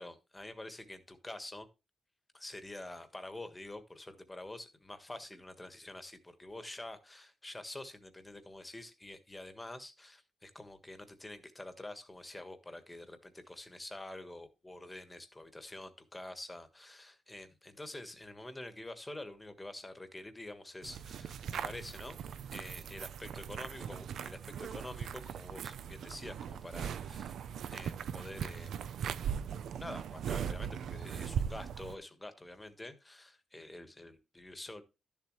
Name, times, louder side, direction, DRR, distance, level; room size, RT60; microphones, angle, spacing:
voice 1, 0.0-1.7 2.3-22.2 22.5-27.3 27.7-28.8 29.8-34.8, left 1 dB, 15° left, 9 dB, 1.5 m, -47 dB
sound 1, 20.8-32.0, right 8 dB, 75° right, 0.7 m, -39 dB
12.5 x 7.3 x 3.2 m, 0.28 s
cardioid pair, 130°, 0 cm